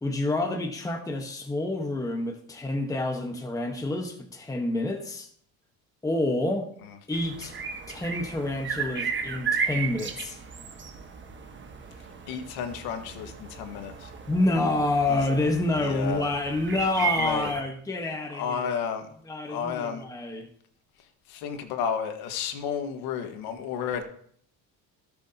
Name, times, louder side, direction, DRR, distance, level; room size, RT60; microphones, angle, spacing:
voice 1, 0.0-5.3 6.0-6.7 7.1-7.6 7.9-10.4 14.3-18.7 19.2-20.5, left 2 dB, 10° left, 3 dB, 1.2 m, -28 dB
sound 1, 7.1-17.6, right 6 dB, 30° right, 1.3 m, -34 dB
voice 2, 12.3-14.1 15.1-15.2 15.8-16.3 17.2-17.5 18.3-19.1 19.5-20.0 21.3-24.0, left 7 dB, 80° left, 6 dB, 1.7 m, -32 dB
17.0 x 6.8 x 2.9 m, 0.62 s
cardioid pair, 105°, 37 cm